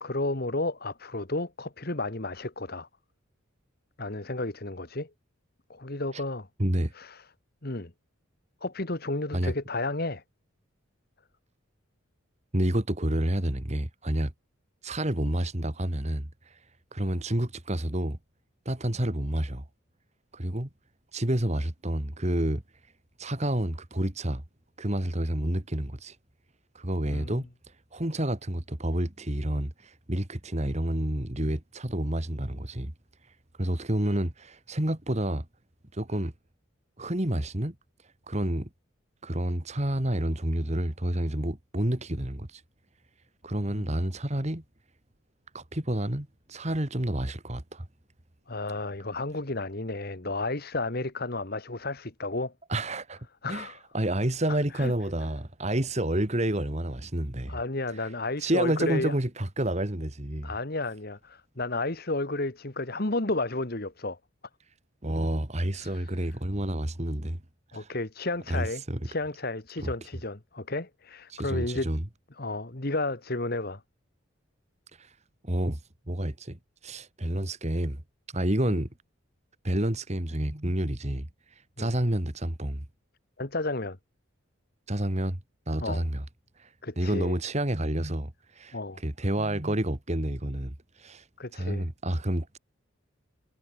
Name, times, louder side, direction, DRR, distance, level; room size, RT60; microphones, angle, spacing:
voice 1, 0.0-2.9 4.0-5.1 5.7-6.5 6.9-7.2 7.6-7.9 8.6-10.2 27.1-27.4 43.7-43.8 48.5-52.5 53.4-53.8 54.5-54.9 57.5-59.1 60.4-64.2 65.7-66.1 67.7-71.9 72.4-73.8 78.7-78.8 81.8-81.9 83.4-84.0 85.8-86.0 86.8-87.4 88.7-89.0 91.4-91.9, left 2 dB, 45° left, 1.8 m, -32 dB
voice 2, 6.6-6.9 9.3-9.5 12.5-14.3 14.8-16.6 16.9-18.2 18.7-19.6 20.3-20.7 21.1-22.6 23.2-24.4 24.8-26.2 26.7-27.5 27.9-32.9 33.6-35.5 35.9-36.3 37.0-37.7 38.3-38.7 39.2-42.6 43.4-44.6 45.5-47.9 52.7-53.2 53.5-57.6 58.0-58.1 58.4-60.5 65.0-67.4 67.7-67.9 68.5-69.0 69.8-69.9 71.3-72.0 74.9-75.2 75.4-75.8 76.1-78.0 78.3-78.9 79.6-82.8 84.9-85.4 85.7-86.2 86.6-91.3 91.5-92.6, right 1 dB, 30° right, 2.2 m, -29 dB
head